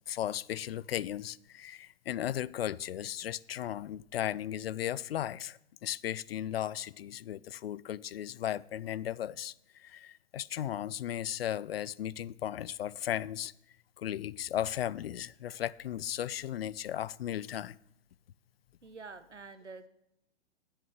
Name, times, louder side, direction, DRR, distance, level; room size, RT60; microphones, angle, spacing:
voice 1, 0.1-13.5 14.0-17.8, left 11 dB, 60° left, 0.4 m, -36 dB
voice 2, 18.8-19.9, right 4 dB, 90° right, 1.1 m, -47 dB
9.5 x 8.1 x 6.1 m
figure-of-eight pair, 115°, 34 cm